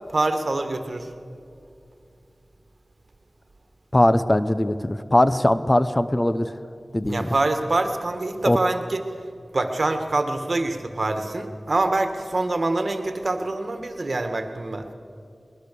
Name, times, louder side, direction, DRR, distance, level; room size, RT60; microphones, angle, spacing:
voice 1, 0.1-1.1 7.1-9.0 9.5-14.9, right 2 dB, 55° right, 7 dB, 1.7 m, -25 dB
voice 2, 3.9-6.5 6.9-7.3 8.4-8.6, left 1 dB, 25° left, 12 dB, 0.8 m, -20 dB
21.0 x 21.0 x 6.9 m, 2.5 s
cardioid pair, 45°, 0 cm